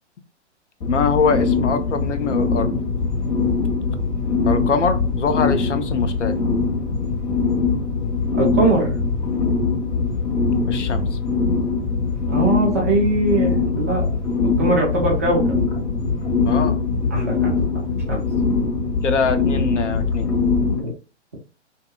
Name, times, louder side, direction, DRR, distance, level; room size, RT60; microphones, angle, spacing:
sound 1, 0.8-20.8, left 4 dB, 45° left, 1.4 m, -22 dB
voice 1, 0.9-2.7 4.4-6.3 10.7-11.1 16.4-16.8 19.0-20.3, left 5 dB, 80° left, 9 dB, 0.6 m, -23 dB
voice 2, 8.4-8.9 12.3-14.1 14.4-15.6 17.1-17.5 18.1-18.2 20.8-20.9, right 2 dB, 15° right, -6 dB, 0.3 m, -21 dB
2.7 x 2.2 x 2.3 m, 0.34 s
figure-of-eight pair, 125°, 35 cm